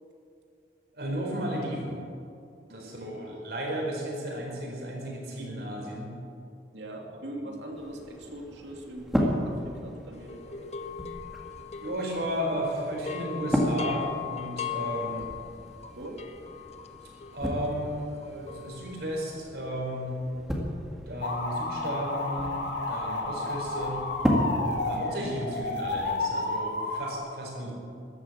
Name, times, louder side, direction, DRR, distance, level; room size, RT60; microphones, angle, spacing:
voice 1, 0.9-2.0 2.7-6.1 7.4-7.5 11.8-15.3 17.3-20.2 21.1-22.6 22.9-24.0 24.8-27.7, equal, 65° right, -1 dB, 4.5 m, -34 dB
voice 2, 2.7-3.4 6.7-10.9 15.1-15.3 16.0-16.2 24.9-25.4, right 1 dB, 85° right, 1 dB, 2.5 m, -42 dB
sound 1, 7.7-25.7, equal, ahead, 2.0 m, -34 dB
sound 2, 10.3-12.6 12.9-19.2, left 8 dB, 35° left, 0.8 m, -39 dB
sound 3, 21.2-27.2, left 2 dB, 85° left, 1.9 m, -31 dB
14.0 x 13.0 x 7.3 m, 2.6 s
head